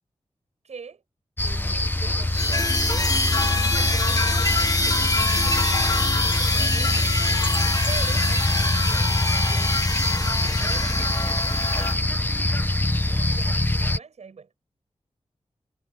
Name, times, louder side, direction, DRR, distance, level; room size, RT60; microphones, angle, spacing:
voice 1, 0.6-1.0 1.4-7.4 7.9-9.9 10.3-11.9 13.0-14.7, right 5 dB, 80° right, 7.6 m, -43 dB
sound 1, 1.4-14.0, left 1 dB, 20° left, 1.8 m, -23 dB
sound 2, 2.3-12.0, left 2 dB, 35° left, 1.9 m, -26 dB
cardioid pair, 50°, 11 cm